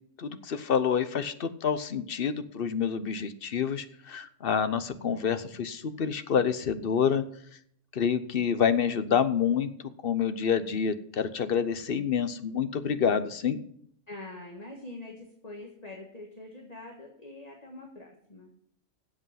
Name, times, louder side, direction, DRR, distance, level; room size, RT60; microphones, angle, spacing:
voice 1, 0.2-7.2 7.9-9.7 10.0-13.6, left 7 dB, 55° left, 12 dB, 1.0 m, -28 dB
voice 2, 14.1-18.5, left 2 dB, 35° left, 1 dB, 1.6 m, -44 dB
13.0 x 7.9 x 5.7 m, 0.67 s
omnidirectional pair, 1.3 m